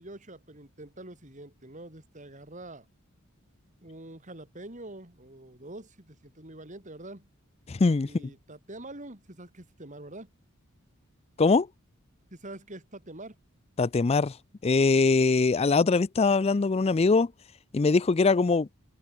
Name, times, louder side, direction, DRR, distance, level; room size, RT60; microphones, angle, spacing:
voice 1, 0.0-2.9 3.8-7.3 8.0-10.3 12.3-13.4 14.9-15.1, right 2 dB, 35° right, 3.8 m, -45 dB
voice 2, 7.7-8.3 11.4-11.7 13.8-14.3 14.6-17.3 17.7-18.7, left 4 dB, 30° left, 0.4 m, -22 dB
open air
head